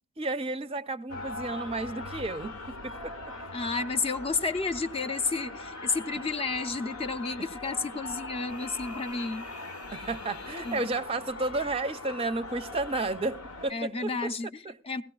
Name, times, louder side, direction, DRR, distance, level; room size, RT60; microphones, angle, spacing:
voice 1, 0.2-3.1 9.9-14.3 14.6-14.8, right 2 dB, 25° right, 0.5 m, -32 dB
sound 1, 1.1-13.7, left 2 dB, 85° left, 1.0 m, -41 dB
voice 2, 3.5-9.5 10.6-10.8 13.7-15.0, left 4 dB, 25° left, 0.5 m, -31 dB
17.5 x 16.0 x 2.3 m
head